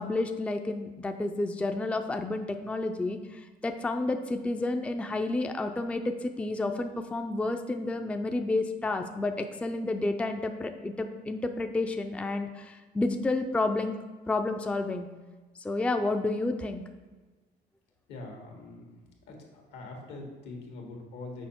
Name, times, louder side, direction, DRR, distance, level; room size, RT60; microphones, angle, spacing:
voice 1, 0.0-14.0 14.3-15.1 15.6-16.8, left 2 dB, 5° left, 6 dB, 0.4 m, -30 dB
voice 2, 18.1-18.9 19.3-21.5, left 2 dB, 85° left, 1 dB, 1.6 m, -43 dB
6.3 x 4.7 x 4.4 m, 1.3 s
cardioid pair, 110°, 17 cm